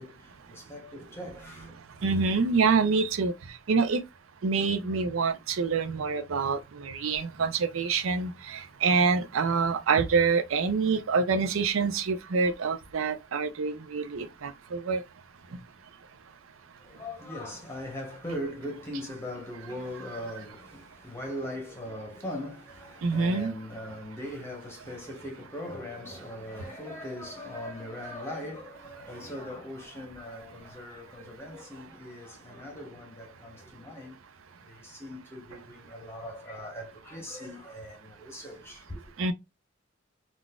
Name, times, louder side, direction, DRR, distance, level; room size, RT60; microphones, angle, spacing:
voice 1, 0.0-1.8 16.8-34.2 34.6-39.0, left 1 dB, 10° left, 0.9 m, -40 dB
voice 2, 2.0-3.3 3.7-4.0 4.4-15.0 23.0-23.5 39.2-39.3, right 4 dB, 85° right, 0.5 m, -26 dB
3.8 x 2.4 x 2.3 m
head